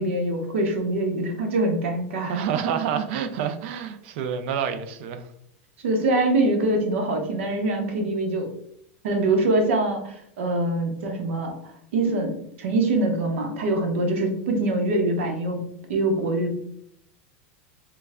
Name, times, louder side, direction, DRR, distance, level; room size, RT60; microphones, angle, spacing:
voice 1, 0.0-2.4 5.8-8.5 9.0-11.5 11.9-15.6 15.9-16.5, right 2 dB, 80° right, 0.9 m, -24 dB
voice 2, 2.2-5.3, right 8 dB, 65° right, 0.5 m, -28 dB
3.2 x 2.2 x 3.5 m
supercardioid pair, 135°, 7 cm